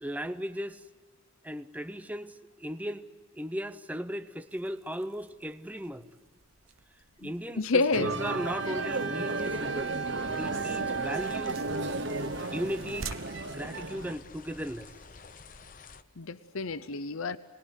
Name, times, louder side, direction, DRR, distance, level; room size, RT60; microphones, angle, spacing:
voice 1, 0.0-0.8 1.4-3.1 3.3-6.1 7.2-9.9 10.3-11.6 12.5-13.1 13.5-14.9, equal, 5° right, 10 dB, 0.7 m, -36 dB
sound 1, 4.4-14.6, right 5 dB, 90° right, 1.1 m, -50 dB
voice 2, 7.2-8.1 16.2-17.4, left 3 dB, 85° left, 13 dB, 0.8 m, -29 dB
sound 2, 7.9-14.1, right 3 dB, 55° right, 0.9 m, -33 dB
sound 3, 9.3-16.0, left 4 dB, 40° left, 0.9 m, -50 dB
28.0 x 21.0 x 8.1 m, 1.3 s
head